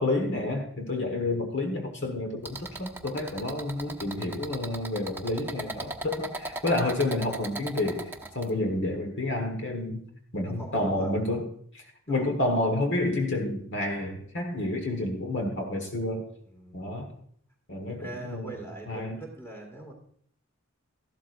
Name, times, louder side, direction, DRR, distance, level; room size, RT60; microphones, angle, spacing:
voice 1, 0.0-10.0 10.3-11.5 11.7-16.3 16.7-17.1 17.7-18.6 18.9-19.2, left 2 dB, 55° left, 4 dB, 1.4 m, -29 dB
voice 2, 0.9-1.4 8.4-8.9 10.4-11.3 12.1-12.3 16.5-16.9 17.9-19.9, right 2 dB, 10° left, 1 dB, 2.2 m, -43 dB
sound 1, 2.4-8.5, right 1 dB, 10° right, 0.7 m, -38 dB
13.5 x 12.0 x 2.6 m, 0.64 s
head